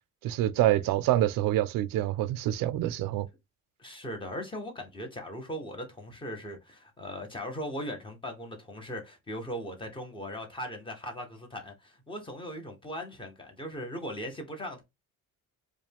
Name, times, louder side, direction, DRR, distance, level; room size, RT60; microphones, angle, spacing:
voice 1, 0.2-3.3, right 14 dB, 90° right, 0.5 m, -26 dB
voice 2, 3.8-14.8, equal, 15° left, 0.8 m, -39 dB
4.8 x 2.2 x 3.4 m
cardioid pair, 175°, 33 cm